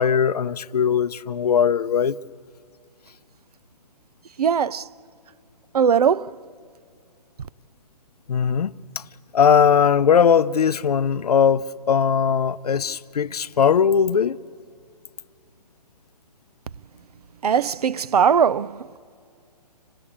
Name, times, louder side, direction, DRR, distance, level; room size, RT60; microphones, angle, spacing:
voice 1, 0.0-2.2 8.3-9.0 9.3-14.4, left 7 dB, 65° left, 0.6 m, -19 dB
voice 2, 4.4-4.9 5.7-6.4 17.4-19.0, right 7 dB, 65° right, 0.5 m, -20 dB
26.5 x 18.5 x 8.6 m
hypercardioid pair, 180°, 21 cm